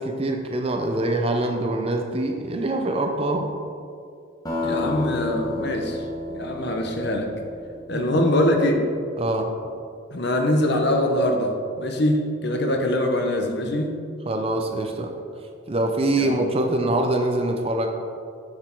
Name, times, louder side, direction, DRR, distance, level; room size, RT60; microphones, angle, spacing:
voice 1, 0.0-3.5 7.9-8.2 9.2-9.5 14.3-15.1 15.7-17.9, right 2 dB, 30° right, 4 dB, 0.6 m, -24 dB
sound 1, 4.5-8.7, left 2 dB, 20° left, 1.4 m, -31 dB
voice 2, 4.6-6.0 6.3-7.3 7.9-8.8 10.1-14.0 16.2-16.4, left 1 dB, 55° left, 3 dB, 0.9 m, -23 dB
7.4 x 6.4 x 4.5 m, 2.4 s
head